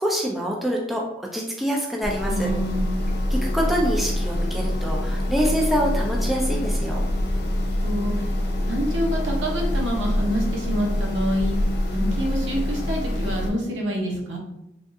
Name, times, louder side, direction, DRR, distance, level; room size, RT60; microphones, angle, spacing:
voice 1, 0.0-2.5 3.3-7.0, equal, ahead, -2 dB, 0.3 m, -25 dB
sound 1, 2.0-13.5, left 1 dB, 55° left, 0.5 m, -25 dB
voice 2, 2.3-3.1 7.8-8.3 8.7-11.5 11.9-14.4, equal, 70° right, -1 dB, 0.8 m, -27 dB
3.4 x 2.4 x 2.6 m, 0.87 s
head